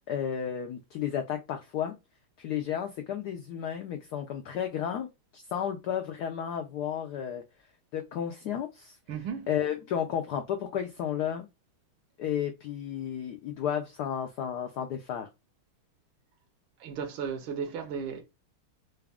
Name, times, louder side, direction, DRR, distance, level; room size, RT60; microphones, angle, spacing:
voice 1, 0.1-2.0 2.4-5.1 5.3-7.4 7.9-8.9 9.5-11.5 12.2-15.3, left 9 dB, 90° left, 0.8 m, -32 dB
voice 2, 9.1-9.5 16.8-18.2, right 6 dB, 80° right, 1.5 m, -35 dB
4.0 x 2.3 x 3.4 m
omnidirectional pair, 2.3 m